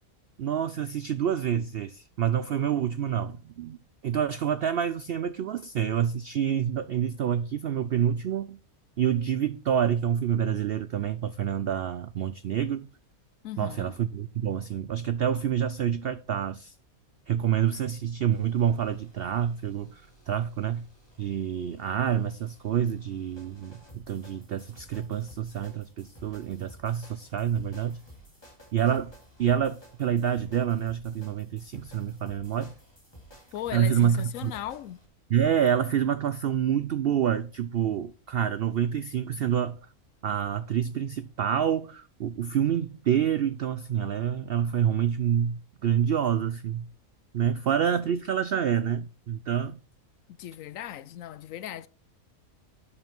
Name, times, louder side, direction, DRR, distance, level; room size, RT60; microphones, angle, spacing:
voice 1, 0.4-3.8 4.0-8.6 9.0-12.9 13.6-16.7 17.3-20.8 21.2-28.0 28.7-29.1 29.4-32.7 33.7-34.5 35.3-39.8 40.2-46.9 47.3-49.8, right 9 dB, 75° right, 0.5 m, -27 dB
voice 2, 13.4-14.0 33.5-35.0 50.3-51.9, left 11 dB, 70° left, 0.9 m, -37 dB
sound 1, 18.3-35.1, equal, 15° left, 2.9 m, -54 dB
8.6 x 7.2 x 4.4 m
omnidirectional pair, 1.5 m